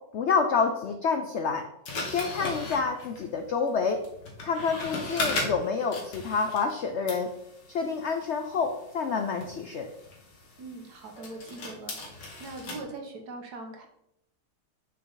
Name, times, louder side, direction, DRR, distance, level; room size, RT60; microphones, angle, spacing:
voice 1, 0.1-1.7 2.0-4.1 4.4-7.3 7.7-9.9, left 5 dB, 75° left, 5 dB, 0.6 m, -28 dB
sound 1, 1.9-6.8 7.1-12.8, left 2 dB, 90° left, 2.2 m, -37 dB
voice 2, 10.6-13.9, right 2 dB, 70° right, 3 dB, 1.6 m, -42 dB
6.2 x 5.7 x 3.9 m, 0.78 s
omnidirectional pair, 1.8 m